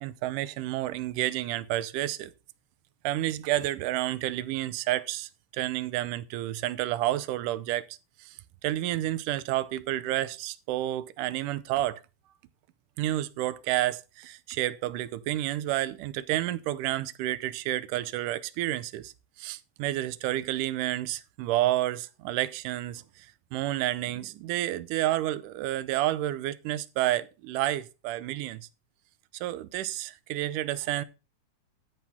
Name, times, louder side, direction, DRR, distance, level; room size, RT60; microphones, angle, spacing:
voice 1, 0.0-2.3 3.0-8.4 8.6-12.0 13.0-19.1 19.4-28.7 29.3-31.0, right 14 dB, 90° right, 2.2 m, -30 dB
13.5 x 4.7 x 5.5 m
omnidirectional pair, 3.6 m